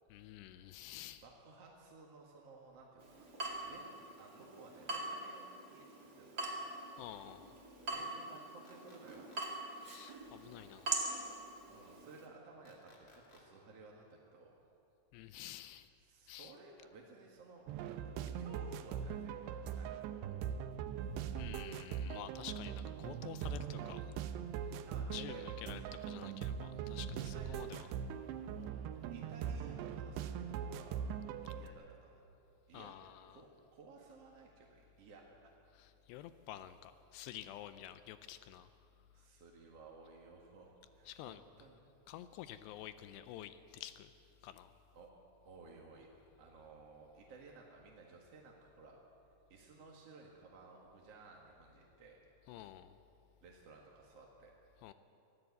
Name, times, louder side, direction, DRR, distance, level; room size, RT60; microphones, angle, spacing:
voice 1, 0.1-1.2 7.0-7.6 9.8-11.2 15.1-15.9 16.3-16.5 21.4-24.1 24.7-24.8 25.1-27.9 32.7-33.4 35.7-38.7 41.1-41.4 42.1-44.1 44.4-44.7 52.5-53.0 54.8-54.9, left 12 dB, 80° left, 12 dB, 2.7 m, -50 dB
voice 2, 1.2-3.4 3.6-5.9 6.2-6.7 7.8-9.4 11.7-14.6 15.2-15.5 16.0-19.9 24.8-25.4 27.3-27.9 28.5-28.9 29.1-31.0 31.5-32.3 32.7-32.9 33.3-35.5 39.1-41.8 44.9-45.1 45.4-46.1 46.4-49.0 49.5-52.2 53.4-54.5, right 3 dB, 50° right, -1 dB, 2.1 m, -57 dB
Water tap faucet / Drip, 3.0-12.3, right 2 dB, 30° right, 1.9 m, -43 dB
sound 1, 8.6-9.4 12.6-13.4, left 3 dB, 30° left, 2.8 m, -62 dB
sound 2, 17.7-31.7, right 8 dB, 80° right, 2.9 m, -41 dB
23.5 x 15.0 x 8.2 m, 2.8 s
omnidirectional pair, 5.0 m